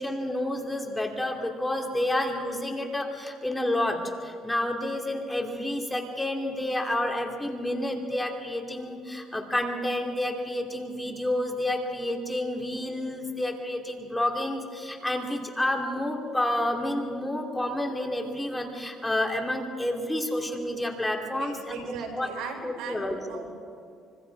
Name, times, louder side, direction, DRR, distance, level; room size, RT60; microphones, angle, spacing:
voice 1, 0.0-21.8 22.2-22.3 22.6-23.5, left 1 dB, 10° left, 2 dB, 3.0 m, -29 dB
voice 2, 21.4-23.5, right 5 dB, 80° right, 2 dB, 4.8 m, -38 dB
25.5 x 24.5 x 4.8 m, 2.4 s
cardioid pair, 100°, 0 cm